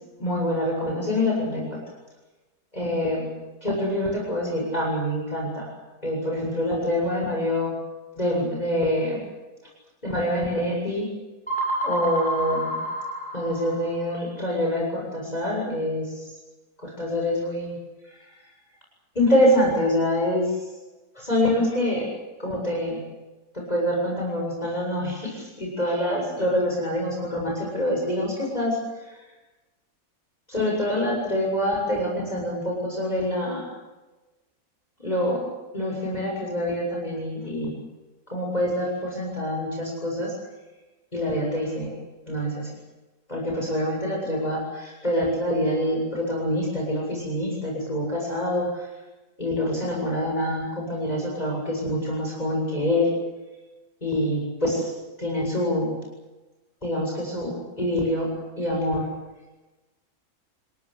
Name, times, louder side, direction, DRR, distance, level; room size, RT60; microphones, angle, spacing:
voice 1, 0.2-1.8 2.7-3.3 3.6-5.7 6.0-7.7 8.1-9.2 10.0-11.1 11.8-12.8 13.3-16.3 16.8-17.8 18.0-18.4 19.1-20.7 21.1-22.1 22.4-23.0 23.5-29.2 30.5-33.7 35.0-35.5 35.7-37.7 38.3-40.3 41.1-42.0 42.3-42.7 43.3-48.9 49.4-53.2 54.0-54.9 55.2-56.0 56.8-58.3 58.6-59.1, left 1 dB, 25° left, -1 dB, 7.8 m, -26 dB
sound 1, 11.5-14.1, right 1 dB, 5° left, 7.6 m, -28 dB
28.5 x 17.5 x 8.4 m, 1.1 s
omnidirectional pair, 1.6 m